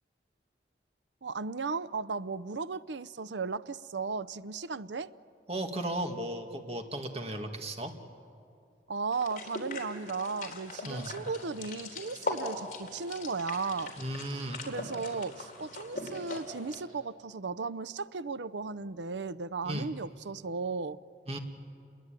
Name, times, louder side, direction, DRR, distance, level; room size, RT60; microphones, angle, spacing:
voice 1, 1.2-5.1 8.9-13.9 14.6-21.0, right 4 dB, 85° right, 15 dB, 0.7 m, -35 dB
voice 2, 5.5-7.9 10.9-11.1 14.0-14.6 19.7-19.9 21.3-21.4, right 1 dB, 35° right, 4 dB, 2.1 m, -35 dB
sound 1, 9.1-16.8, left 2 dB, 45° left, 3.7 m, -40 dB
29.0 x 21.5 x 9.1 m, 2.5 s
head